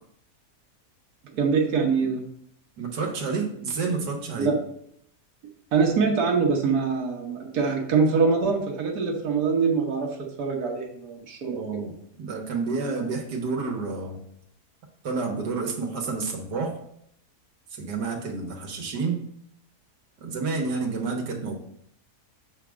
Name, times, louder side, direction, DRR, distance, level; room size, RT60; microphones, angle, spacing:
voice 1, 1.4-2.2 4.4-4.5 5.7-11.8, right 5 dB, 70° right, 0 dB, 1.6 m, -24 dB
voice 2, 2.8-4.5 11.4-11.9 12.2-14.2 15.0-16.8 17.7-19.2 20.2-21.6, right 4 dB, 85° right, 1 dB, 1.7 m, -29 dB
7.0 x 3.5 x 6.1 m, 0.71 s
omnidirectional pair, 1.7 m